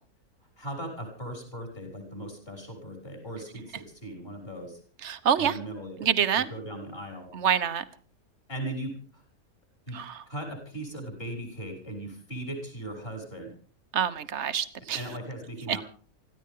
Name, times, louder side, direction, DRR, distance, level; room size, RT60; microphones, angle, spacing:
voice 1, 0.6-4.8 5.4-6.1 6.3-7.3 8.5-9.2 9.9-10.0 10.3-13.5 14.9-15.8, right 1 dB, 40° left, 3 dB, 6.8 m, -38 dB
voice 2, 5.0-5.5 6.0-6.4 7.3-7.8 9.9-10.2 13.9-15.0 15.7-15.8, right 8 dB, 50° right, 12 dB, 1.4 m, -26 dB
25.5 x 15.0 x 3.8 m, 0.41 s
omnidirectional pair, 1.5 m